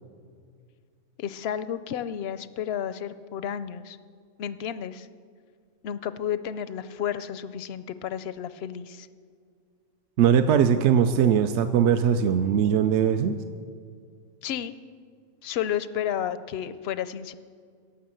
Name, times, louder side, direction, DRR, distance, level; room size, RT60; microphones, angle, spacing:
voice 1, 1.2-4.0 4.4-5.1 5.8-9.1 14.4-14.7 15.4-17.3, left 9 dB, 65° left, 14 dB, 0.7 m, -32 dB
voice 2, 10.2-13.4, right 8 dB, 65° right, 8 dB, 0.8 m, -20 dB
17.5 x 6.4 x 7.6 m, 2.1 s
omnidirectional pair, 1.4 m